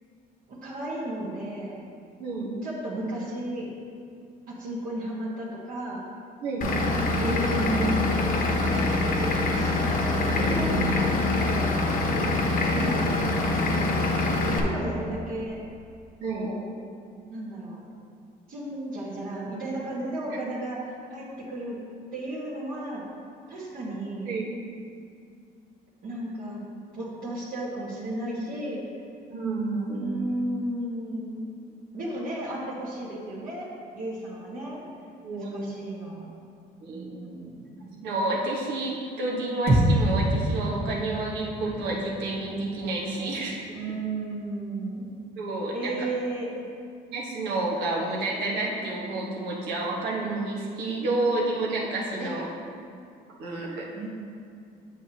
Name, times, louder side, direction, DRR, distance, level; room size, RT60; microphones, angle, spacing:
voice 1, 0.5-1.8 2.6-3.7 4.5-6.0 6.9-8.0 8.7-12.0 12.6-13.2 13.5-14.0 14.4-15.6 16.2-16.6 17.3-17.8 18.5-21.8 22.1-23.0 23.5-24.3 26.0-28.8 29.9-31.5 31.9-33.6 33.9-34.8 35.3-36.4 36.9-38.0 43.7-45.2 45.7-46.6 52.2-52.3 54.0-54.1, right 1 dB, 55° right, -8 dB, 1.7 m, -34 dB
voice 2, 2.2-2.5 6.4-6.9 16.2-16.5 24.2-24.5 29.3-30.1 35.2-35.6 36.8-37.2 38.0-43.6 45.4-45.9 47.1-52.5 53.4-53.9, right 2 dB, 80° right, -4 dB, 1.6 m, -30 dB
Vehicle / Engine, 6.6-14.6, left 2 dB, 55° left, 1.1 m, -24 dB
sound 1, 39.7-44.0, right 1 dB, 35° right, 1.9 m, -27 dB
7.9 x 7.8 x 3.0 m, 2.3 s
cardioid pair, 110°, 17 cm